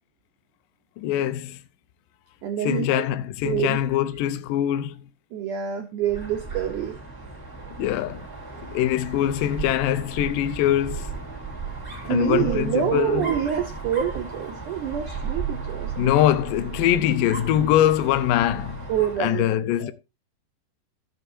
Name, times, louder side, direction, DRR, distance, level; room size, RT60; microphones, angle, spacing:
voice 1, 1.0-1.6 2.6-5.0 7.8-8.3 8.7-11.1 12.1-13.3 16.0-18.9 19.2-19.9, left 12 dB, 90° left, 1.9 m, -23 dB
voice 2, 2.4-3.0 3.4-3.8 5.3-7.0 8.5-8.6 12.1-16.1 18.9-19.4 19.8-19.9, right 9 dB, 90° right, 1.7 m, -26 dB
Dog, 6.0-19.3, right 4 dB, 5° right, 2.4 m, -35 dB
15.0 x 7.5 x 2.7 m
omnidirectional pair, 5.0 m